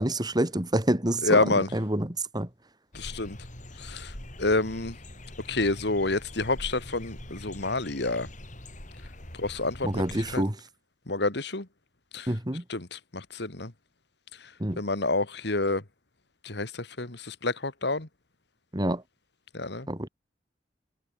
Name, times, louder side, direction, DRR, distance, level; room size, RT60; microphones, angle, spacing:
voice 1, 0.0-2.5 9.8-10.6 12.3-12.6 14.6-14.8 18.7-19.0 19.9-20.1, right 1 dB, 25° right, 2.5 m, -27 dB
voice 2, 1.2-1.7 2.9-3.4 3.8-4.1 4.4-5.0 5.5-8.3 9.4-10.4 11.1-11.7 12.1-12.3 12.7-13.7 14.8-15.8 16.4-18.1 19.5-19.9, left 2 dB, 65° left, 2.3 m, -28 dB
sound 1, 2.9-10.4, left 1 dB, 45° left, 5.5 m, -43 dB
head